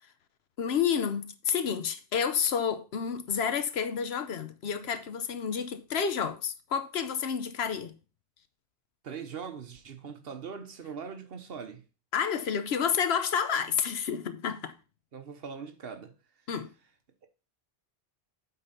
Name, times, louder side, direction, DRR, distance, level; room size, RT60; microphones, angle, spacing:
voice 1, 0.6-8.0 12.1-14.7 16.5-16.7, left 7 dB, 75° left, 1.0 m, -30 dB
voice 2, 9.0-11.8 15.1-16.4, right 6 dB, 65° right, 1.1 m, -41 dB
8.1 x 3.9 x 5.7 m
omnidirectional pair, 1.1 m